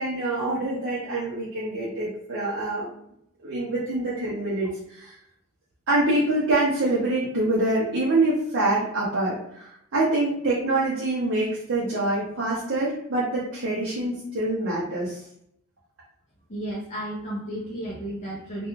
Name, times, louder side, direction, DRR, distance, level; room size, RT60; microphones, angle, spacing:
voice 1, 0.0-2.9 3.4-5.2 5.9-15.2, right 2 dB, 65° right, -7 dB, 0.6 m, -25 dB
voice 2, 16.5-18.7, right 1 dB, 30° left, -7 dB, 0.5 m, -33 dB
2.4 x 2.2 x 3.0 m, 0.74 s
head